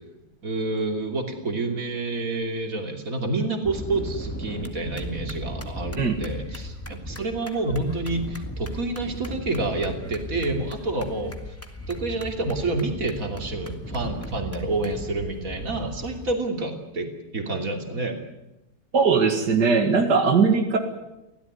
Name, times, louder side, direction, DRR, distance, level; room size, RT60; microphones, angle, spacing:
voice 1, 0.4-11.4 11.9-17.1 17.3-18.2, right 2 dB, 55° right, 3 dB, 3.4 m, -28 dB
sound 1, 3.6-16.3, equal, 10° left, 2.0 m, -36 dB
voice 2, 18.9-20.8, right 5 dB, 85° right, 4 dB, 2.5 m, -20 dB
24.5 x 17.0 x 9.7 m, 0.95 s
omnidirectional pair, 1.7 m